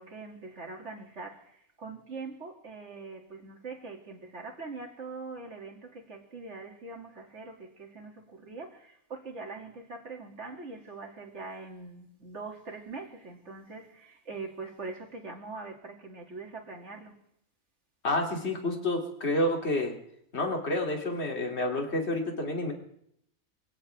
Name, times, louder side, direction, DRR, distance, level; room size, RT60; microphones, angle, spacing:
voice 1, 0.0-17.2, right 3 dB, 50° right, 2.6 m, -43 dB
voice 2, 18.0-19.9 20.3-22.7, left 1 dB, 45° left, 2.9 m, -29 dB
24.5 x 17.0 x 3.4 m
omnidirectional pair, 1.6 m